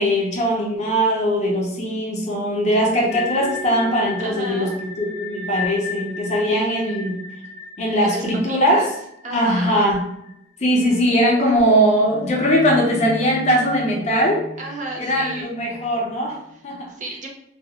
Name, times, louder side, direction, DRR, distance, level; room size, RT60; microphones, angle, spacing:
voice 1, 0.0-7.2 7.8-8.9 9.3-10.1 10.6-14.5 15.0-16.4 16.6-16.9, equal, 40° left, -1 dB, 0.6 m, -20 dB
sound 1, 3.1-9.9 10.2-10.3 10.9-16.2, left 3 dB, 80° left, 0.5 m, -34 dB
voice 2, 4.2-4.7 6.5-7.0 8.0-8.9 9.2-9.7 14.6-15.5 16.5-16.6 16.9-17.3, right 2 dB, 45° right, 0 dB, 0.4 m, -33 dB
2.3 x 2.0 x 2.8 m, 0.77 s
head